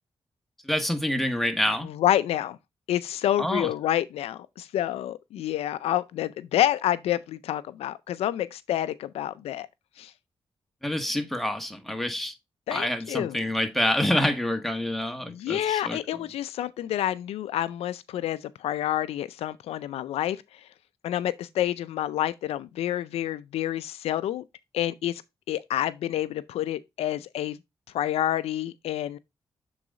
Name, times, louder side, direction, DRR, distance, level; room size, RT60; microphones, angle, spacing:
voice 1, 0.6-1.9 3.4-3.7 10.8-12.3 12.7-16.0, left 1 dB, ahead, 1.6 m, -27 dB
voice 2, 2.0-2.6 2.9-9.7 10.0-10.1 12.7-13.4 15.3-20.4 21.0-24.4 24.7-25.2 25.5-27.6 27.9-29.2, left 12 dB, 90° left, 0.4 m, -28 dB
7.5 x 3.9 x 3.7 m
supercardioid pair, 50°, 10 cm